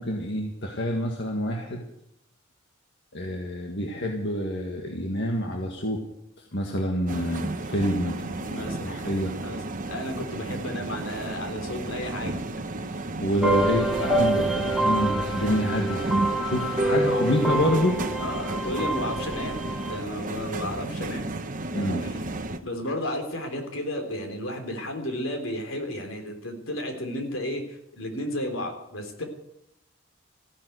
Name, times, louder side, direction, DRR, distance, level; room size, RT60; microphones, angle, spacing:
voice 1, 0.0-1.8 3.1-6.0 6.5-9.3 13.2-16.1 16.4-18.0 21.7-22.0, equal, 60° left, 1 dB, 1.8 m, -27 dB
sound 1, 7.1-22.6, right 2 dB, 40° right, 1.1 m, -33 dB
voice 2, 8.4-9.0 9.4-9.6 9.8-12.3 13.7-13.9 14.9-15.2 16.8-17.5 18.2-19.6 19.9-21.3 22.0-22.3 22.6-29.2, left 1 dB, 75° left, 5 dB, 3.5 m, -33 dB
sound 2, 13.4-20.0, right 1 dB, ahead, 2.1 m, -26 dB
15.0 x 11.0 x 8.0 m, 0.81 s
head